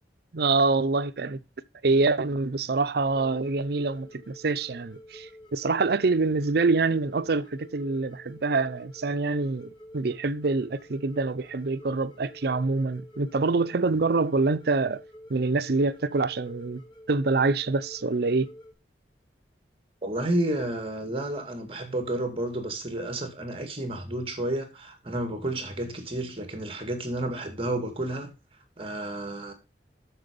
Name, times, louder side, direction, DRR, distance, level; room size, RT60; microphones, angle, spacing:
voice 1, 0.3-1.4 1.8-15.0 15.3-16.8 17.1-18.5, right 3 dB, 60° right, 0.6 m, -25 dB
sound 1, 3.1-18.7, equal, 30° left, 1.8 m, -49 dB
voice 2, 20.0-28.3 28.8-29.5, right 1 dB, 30° right, 2.0 m, -31 dB
7.9 x 6.8 x 5.2 m
head